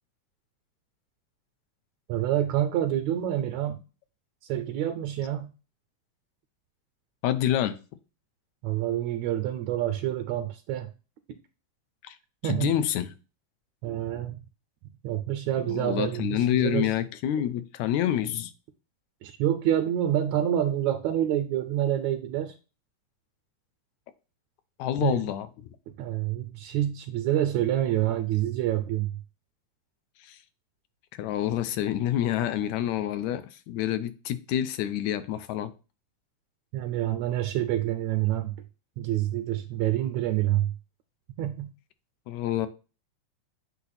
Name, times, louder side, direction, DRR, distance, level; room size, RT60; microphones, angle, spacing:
voice 1, 2.1-3.8 4.5-5.5 8.6-10.9 11.3-11.4 12.4-12.7 13.8-14.4 15.0-16.9 19.2-22.5 25.0-25.2 25.9-29.2 36.7-38.6 39.0-40.7 41.4-41.7, right 12 dB, 80° right, 1.8 m, -27 dB
voice 2, 7.2-7.8 12.1-12.2 12.4-13.1 15.6-18.5 24.8-25.5 30.2-30.4 31.2-35.7 42.3-42.7, left 11 dB, 80° left, 1.9 m, -27 dB
8.1 x 2.9 x 4.1 m
omnidirectional pair, 3.3 m